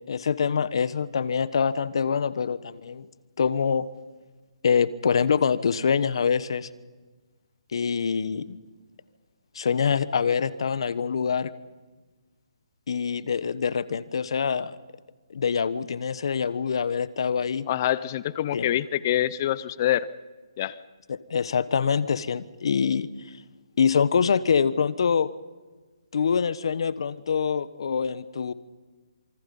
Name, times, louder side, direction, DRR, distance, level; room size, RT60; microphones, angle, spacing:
voice 1, 0.1-3.1 3.4-3.8 4.6-6.7 7.7-8.6 9.5-11.5 12.9-14.8 15.3-17.7 18.5-18.7 21.1-23.1 23.8-25.3 26.1-28.5, left 6 dB, 60° left, 15 dB, 1.2 m, -25 dB
voice 2, 17.7-20.1 20.6-20.8, left 12 dB, 35° left, 18 dB, 0.7 m, -25 dB
27.5 x 24.0 x 5.5 m, 1.3 s
hypercardioid pair, 155°, 3 cm